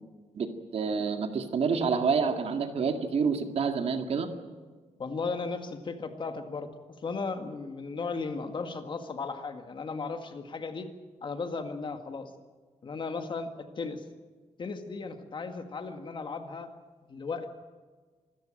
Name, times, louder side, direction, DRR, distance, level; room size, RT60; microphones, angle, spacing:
voice 1, 0.7-4.3, right 5 dB, 55° right, 6 dB, 2.1 m, -28 dB
voice 2, 5.0-6.7 7.0-10.9 11.2-12.3 12.8-13.5 13.8-14.0 14.6-16.7 17.1-17.5, left 4 dB, 40° left, 7 dB, 1.9 m, -35 dB
25.5 x 14.0 x 9.0 m, 1.4 s
wide cardioid pair, 160°, 12 cm